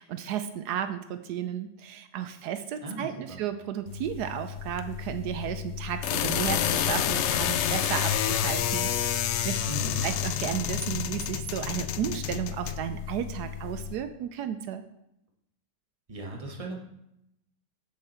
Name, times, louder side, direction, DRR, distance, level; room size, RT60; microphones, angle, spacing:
voice 1, 0.0-9.6 10.0-14.8, right 9 dB, 80° right, 9 dB, 1.1 m, -33 dB
voice 2, 2.8-3.4 9.7-10.1 16.1-16.8, right 2 dB, 20° right, 0 dB, 1.3 m, -37 dB
sound 1, 3.9-14.0, left 10 dB, 85° left, 0.6 m, -29 dB
8.1 x 7.2 x 4.3 m, 0.81 s
omnidirectional pair, 1.8 m